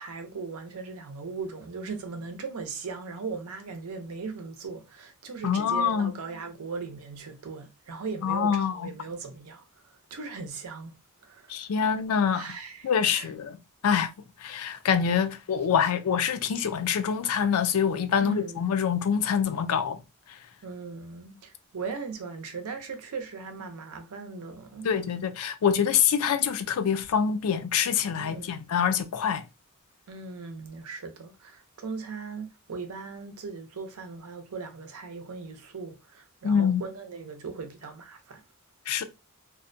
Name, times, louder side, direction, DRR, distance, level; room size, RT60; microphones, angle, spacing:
voice 1, 0.0-11.7 12.3-13.3 18.1-18.6 20.6-24.9 28.2-28.5 30.1-38.4, right 4 dB, 85° right, 0.6 m, -38 dB
voice 2, 5.4-6.1 8.2-8.9 11.5-12.5 12.8-14.1 14.4-20.0 24.8-29.4 36.4-36.8 38.9-39.0, left 7 dB, 80° left, 0.4 m, -25 dB
2.5 x 2.1 x 2.5 m
head